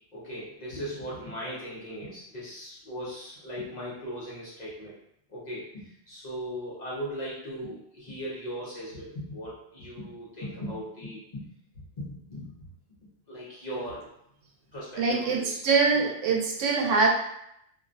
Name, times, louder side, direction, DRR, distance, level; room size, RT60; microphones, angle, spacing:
voice 1, 0.1-5.0 5.3-11.5 12.0-12.5 13.3-14.1 14.7-15.6, equal, 45° left, -7 dB, 0.6 m, -38 dB
voice 2, 15.0-17.1, right 4 dB, 85° right, -1 dB, 0.9 m, -24 dB
2.4 x 2.0 x 2.5 m, 0.75 s
omnidirectional pair, 1.2 m